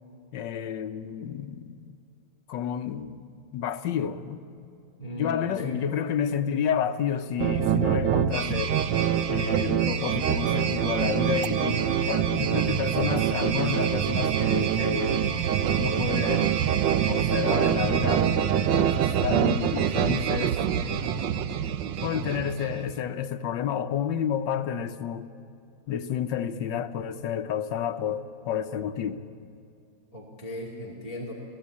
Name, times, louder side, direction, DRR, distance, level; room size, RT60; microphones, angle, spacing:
voice 1, 0.3-2.0 2.5-3.3 3.5-4.4 5.1-8.8 9.3-15.5 15.8-16.6 17.0-18.3 18.7-21.6 22.0-25.3 25.9-29.2, left 8 dB, 80° left, 1.5 m, -30 dB
voice 2, 5.0-5.8 22.0-22.4 30.1-31.3, left 1 dB, 20° left, 2.5 m, -37 dB
sound 1, 7.4-22.9, right 9 dB, 85° right, 1.5 m, -25 dB
29.0 x 16.5 x 8.5 m
omnidirectional pair, 2.0 m